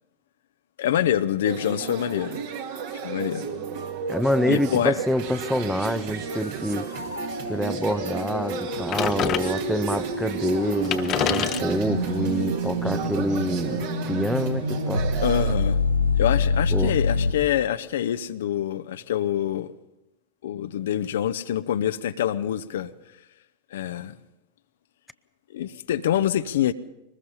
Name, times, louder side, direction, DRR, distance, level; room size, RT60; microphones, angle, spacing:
voice 1, 0.8-2.4 3.0-3.6 4.5-5.0 15.2-15.8 16.2-19.7 20.4-22.9 23.7-24.1 25.5-26.7, left 10 dB, 60° left, 0.8 m, -25 dB
sound 1, 1.5-15.5, right 7 dB, 50° right, 2.1 m, -33 dB
voice 2, 4.1-6.9 7.5-15.1 16.7-17.0, equal, ahead, 0.7 m, -26 dB
sound 2, 6.2-17.3, left 2 dB, 85° left, 3.2 m, -27 dB
sound 3, 8.9-10.0 10.5-10.6 10.8-13.8, left 10 dB, 35° left, 1.0 m, -29 dB
23.0 x 20.0 x 5.6 m
figure-of-eight pair, 90°, 0 cm